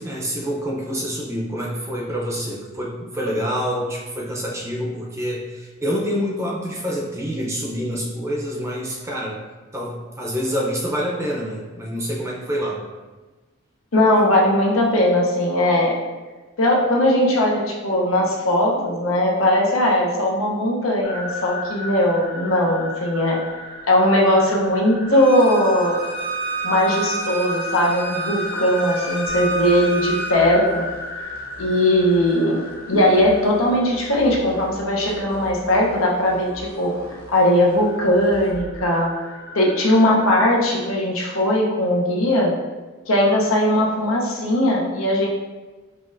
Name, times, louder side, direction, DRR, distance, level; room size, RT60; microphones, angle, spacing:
voice 1, 0.0-9.4 9.7-12.8, equal, 15° right, -3 dB, 0.5 m, -27 dB
voice 2, 13.9-16.0 16.6-23.4 23.9-26.0 26.6-30.8 31.6-36.9 37.3-39.1 39.5-42.5 43.1-45.3, left 1 dB, 85° left, -2 dB, 0.8 m, -19 dB
sound 1, 21.0-40.8, left 2 dB, 50° left, 1.3 m, -36 dB
Bowed string instrument, 25.1-30.4, right 3 dB, 65° left, 1.0 m, -29 dB
sound 2, 29.3-38.7, right 1 dB, 75° right, 0.9 m, -44 dB
5.9 x 2.5 x 2.5 m, 1.2 s
head